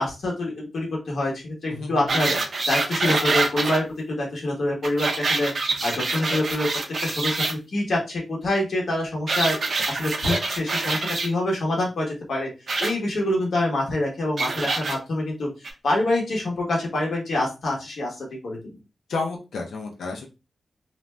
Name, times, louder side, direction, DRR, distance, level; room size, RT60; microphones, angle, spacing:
voice 1, 0.0-2.3 2.7-5.5 5.8-6.7 7.0-12.5 12.8-18.8, left 1 dB, 60° left, -1 dB, 0.9 m, -26 dB
voice 2, 1.7-2.3 19.1-20.3, left 3 dB, 90° left, 1 dB, 0.6 m, -31 dB
sound 1, 2.1-3.8 4.8-7.5 9.3-11.3 12.7-12.9 14.4-15.0 15.6-15.7, right 3 dB, 45° right, 0.5 m, -25 dB
2.5 x 2.2 x 3.1 m, 0.28 s
wide cardioid pair, 180°, 0 cm